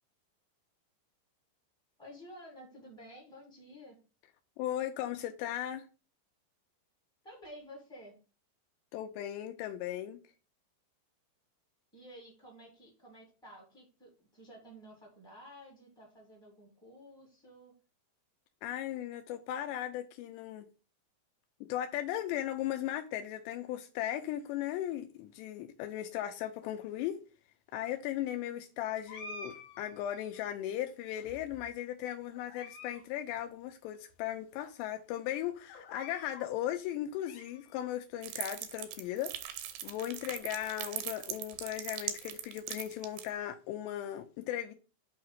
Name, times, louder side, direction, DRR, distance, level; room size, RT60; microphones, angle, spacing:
voice 1, 2.0-4.0 7.2-8.1 11.9-17.7, equal, 5° left, 0.4 m, -52 dB
voice 2, 4.6-5.8 8.9-10.2 18.6-20.7 21.6-27.2 27.7-44.7, left 12 dB, 90° left, 2.5 m, -37 dB
sound 1, 29.1-30.5 31.2-31.8 32.3-33.0 33.3-33.4 34.1-34.2 34.6-34.7 35.7-36.5 37.0-37.9, left 2 dB, 65° left, 3.0 m, -49 dB
Zombie Cuisine, 38.2-43.3, right 11 dB, 85° right, 2.3 m, -40 dB
8.3 x 2.8 x 5.7 m
omnidirectional pair, 5.6 m